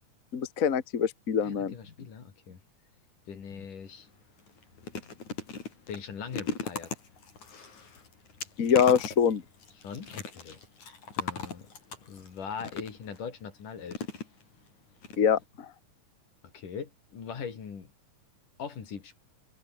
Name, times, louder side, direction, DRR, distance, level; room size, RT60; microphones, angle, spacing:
voice 1, 0.3-1.7 8.6-9.4 15.2-15.7, left 7 dB, 35° left, 1.4 m, -24 dB
voice 2, 1.4-2.6 3.3-4.1 5.9-6.9 9.8-10.6 11.2-11.7 12.1-14.0 16.5-17.9 18.6-19.2, left 6 dB, 80° left, 5.1 m, -41 dB
sound 1, 3.9-4.0 4.4-13.2 13.9-14.7 15.0-15.2 15.4-15.5, left 5 dB, 65° left, 5.8 m, -39 dB
omnidirectional pair, 3.6 m